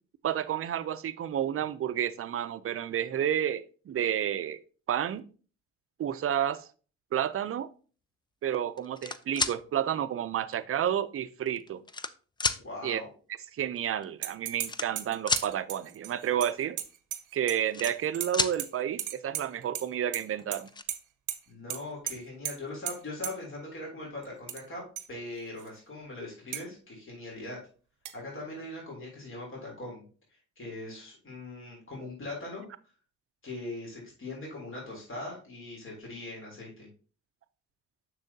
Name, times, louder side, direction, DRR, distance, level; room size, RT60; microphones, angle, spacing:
voice 1, 0.2-4.6 4.9-5.2 6.0-6.7 7.1-7.7 8.4-11.8 12.8-13.0 13.5-16.8 17.3-20.7, right 10 dB, 45° right, 0.6 m, -30 dB
sound 1, 8.8-9.6 10.5-10.6 11.5-12.1 12.4-12.6 13.8-13.9 14.0-14.2 14.6-15.5 17.4-18.1 18.3-18.6 20.0-20.1 20.4-20.8, left 3 dB, 15° left, 0.4 m, -30 dB
voice 2, 12.6-13.1 21.5-24.8 25.1-27.6 28.1-30.0 30.6-32.6 33.4-36.9, left 2 dB, 45° left, 3.3 m, -40 dB
sound 2, 14.2-14.7 15.0-17.6 17.8-18.7 19.0-19.8 20.1-20.6 20.9-21.0 21.3-21.4 21.7-21.8 22.1-22.2 22.4-22.5 22.9-23.0 23.2-23.3 24.2-24.6 25.0-25.1 25.6-25.7 26.5-26.6 28.0-28.1, right 12 dB, 80° right, 0.8 m, -35 dB
7.1 x 6.1 x 2.8 m
cardioid pair, 90°, 30 cm